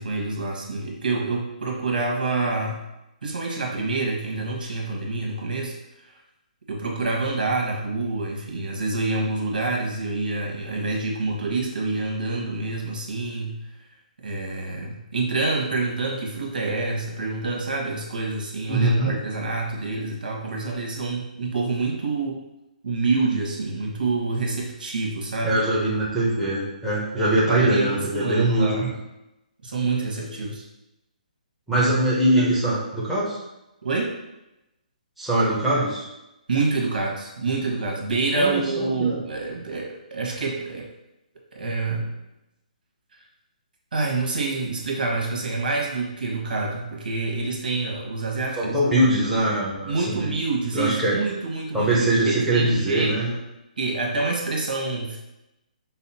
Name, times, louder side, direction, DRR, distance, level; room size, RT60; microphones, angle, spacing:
voice 1, 0.0-2.8 3.2-5.7 6.0-6.1 6.7-13.6 14.2-22.4 22.8-25.6 27.2-28.9 29.6-30.6 32.3-32.6 33.8-34.2 36.5-40.9 41.5-42.2 43.9-48.8 49.9-53.4 53.8-55.2, right 3 dB, 85° right, -1 dB, 1.4 m, -27 dB
voice 2, 18.7-19.1 25.4-28.9 31.7-33.4 35.2-36.0 38.3-39.2 48.6-50.3 50.7-51.2 51.7-53.3, right 1 dB, ahead, -10 dB, 0.8 m, -22 dB
5.6 x 2.1 x 4.2 m, 0.92 s
hypercardioid pair, 165°, 5 cm